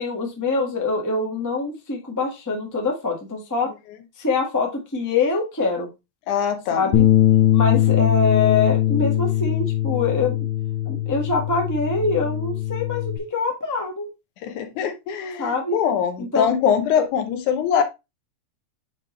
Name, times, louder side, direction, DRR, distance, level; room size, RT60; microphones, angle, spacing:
voice 1, 0.0-3.7 4.2-5.9 6.7-7.1 7.5-10.4 10.8-14.1 15.4-15.8 16.2-16.5, left 3 dB, 10° left, 0 dB, 0.8 m, -24 dB
voice 2, 6.3-6.9 14.4-17.8, left 8 dB, 85° left, 8 dB, 2.4 m, -22 dB
Bass guitar, 6.9-13.2, left 13 dB, 65° left, 1.4 m, -20 dB
8.7 x 3.8 x 3.2 m, 0.24 s
omnidirectional pair, 3.4 m